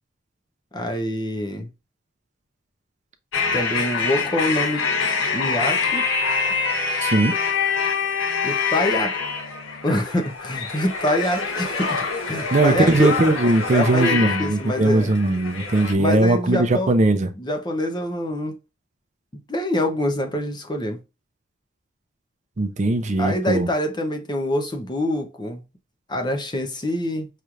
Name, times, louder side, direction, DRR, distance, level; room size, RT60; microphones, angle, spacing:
voice 1, 0.7-1.7 3.5-4.9 5.3-6.1 8.4-9.2 9.8-13.1 13.7-15.1 15.9-16.9 17.4-18.6 19.5-21.0 23.2-25.6 26.1-27.3, left 1 dB, 20° left, 0.7 m, -25 dB
sound 1, 3.3-15.9, left 5 dB, 75° left, 1.1 m, -25 dB
voice 2, 7.0-7.3 12.5-17.3 22.6-23.7, right 2 dB, 35° right, 0.5 m, -19 dB
5.7 x 3.2 x 2.5 m
head